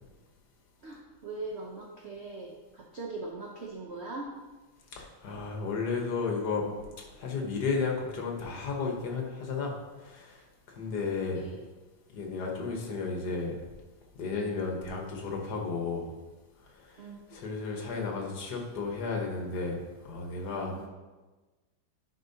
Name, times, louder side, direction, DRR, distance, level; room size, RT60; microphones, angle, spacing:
voice 1, 0.8-4.3 11.3-11.6 17.0-17.4 20.7-20.9, right 3 dB, 75° right, -1 dB, 0.6 m, -41 dB
voice 2, 4.9-6.7 7.0-11.5 12.1-13.6 14.1-16.1 16.6-20.9, left 4 dB, 60° left, 1 dB, 1.5 m, -33 dB
10.0 x 5.2 x 2.8 m, 1.2 s
omnidirectional pair, 2.2 m